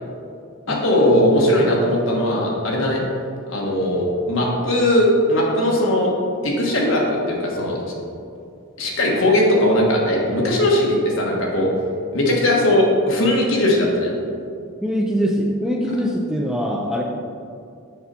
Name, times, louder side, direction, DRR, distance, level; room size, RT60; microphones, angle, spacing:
voice 1, 0.7-3.0 3.5-6.1 6.4-7.8 8.8-11.7 12.1-14.1, left 1 dB, 65° left, -2 dB, 1.3 m, -19 dB
voice 2, 1.6-1.9 2.9-3.0 14.8-17.0, equal, ahead, 0 dB, 0.3 m, -23 dB
6.6 x 5.4 x 4.1 m, 2.4 s
head